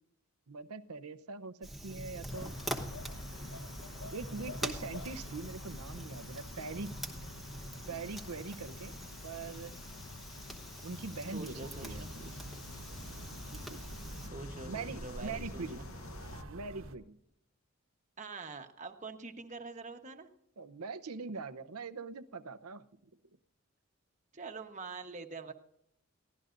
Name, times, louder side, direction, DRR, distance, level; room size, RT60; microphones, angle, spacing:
voice 1, 0.5-2.5 4.1-7.0 7.9-8.9 9.2-9.8 10.8-12.3 13.5-13.8 14.6-15.8 16.5-17.2 20.6-22.8, right 4 dB, 90° right, 12 dB, 0.8 m, -42 dB
Fire, 1.6-14.3, right 1 dB, ahead, 1.1 m, -44 dB
sound 1, 2.3-16.4, left 3 dB, 70° left, 0.9 m, -49 dB
voice 2, 11.3-12.1 14.2-15.9 18.2-20.3 24.3-25.5, right 4 dB, 30° right, 6 dB, 1.1 m, -45 dB
sound 2, 11.6-17.0, right 1 dB, 65° right, 1.2 m, -47 dB
23.0 x 16.5 x 2.6 m, 0.75 s
head